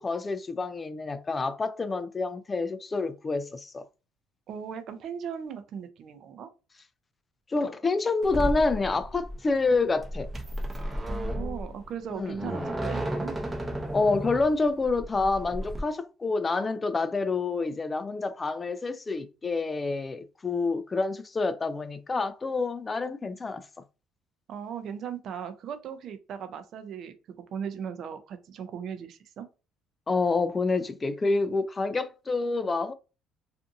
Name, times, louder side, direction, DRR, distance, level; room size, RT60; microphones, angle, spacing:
voice 1, 0.0-3.8 7.5-10.3 12.1-12.7 13.9-23.7 30.1-32.9, left 3 dB, 25° left, 0.3 m, -28 dB
voice 2, 4.5-6.5 11.1-13.3 24.5-27.1 27.5-29.5, right 7 dB, 55° right, 0.5 m, -38 dB
sound 1, 8.2-15.8, equal, 15° right, 0.6 m, -33 dB
2.5 x 2.5 x 2.6 m
cardioid pair, 100°, 0 cm